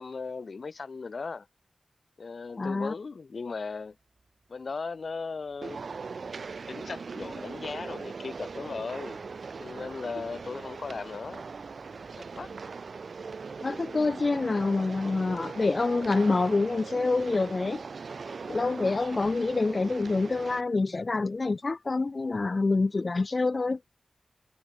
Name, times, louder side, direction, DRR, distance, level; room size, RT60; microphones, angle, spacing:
voice 1, 0.0-1.5 2.2-4.0 4.5-5.8 6.7-9.2 9.6-11.5 12.2-12.5, left 4 dB, 65° left, 0.9 m, -37 dB
voice 2, 2.6-2.9 13.6-17.8 18.5-23.8, left 3 dB, 45° left, 0.5 m, -27 dB
sound 1, 3.7-13.9, right 3 dB, 50° right, 5.1 m, -63 dB
sound 2, 5.6-20.6, right 4 dB, 75° right, 0.3 m, -40 dB
wide cardioid pair, 105°, 0 cm